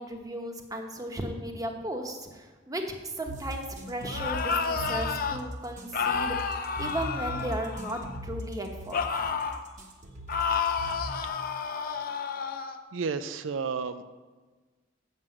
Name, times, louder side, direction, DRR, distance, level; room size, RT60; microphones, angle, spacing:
voice 1, 0.0-2.8 3.2-9.3, right 1 dB, 20° right, 3 dB, 1.0 m, -36 dB
sound 1, 3.3-11.3, equal, 40° right, 1.2 m, -39 dB
sound 2, 4.0-5.4 5.9-8.2 8.9-9.6 10.3-12.8, left 5 dB, 50° left, 0.6 m, -30 dB
voice 2, 12.9-14.0, right 5 dB, 90° right, 11 dB, 0.5 m, -31 dB
7.5 x 6.1 x 7.7 m, 1.3 s
head